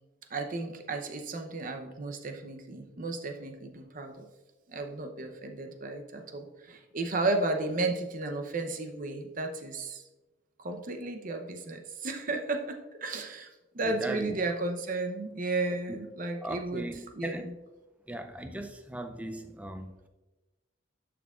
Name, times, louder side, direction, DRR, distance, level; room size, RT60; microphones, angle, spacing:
voice 1, 0.3-4.3 4.7-10.0 10.6-13.5 13.7-16.9 17.1-17.5, right 2 dB, 40° right, 0.7 m, -33 dB
voice 2, 13.8-14.3 15.9-16.0 16.4-17.5 18.1-20.1, right 1 dB, 5° right, 0.4 m, -38 dB
11.0 x 6.1 x 2.4 m
head